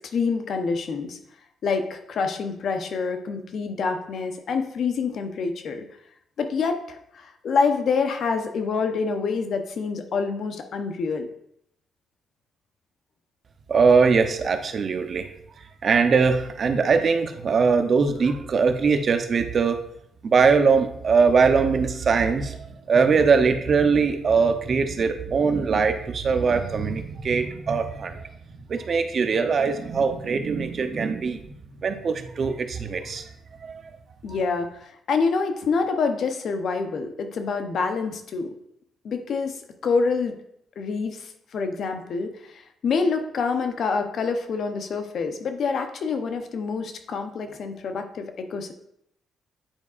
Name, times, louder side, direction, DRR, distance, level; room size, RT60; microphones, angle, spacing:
voice 1, 0.1-1.2 1.6-5.8 6.4-11.3 34.2-38.5 39.0-40.3 40.8-48.7, left 4 dB, 60° left, 7 dB, 0.8 m, -27 dB
voice 2, 13.7-15.3 15.8-19.8 20.2-28.2 28.7-31.5 31.8-33.2 33.6-33.8 34.3-34.5, right 5 dB, 50° right, 8 dB, 0.6 m, -21 dB
9.0 x 4.7 x 2.5 m, 0.74 s
cardioid pair, 90°, 0 cm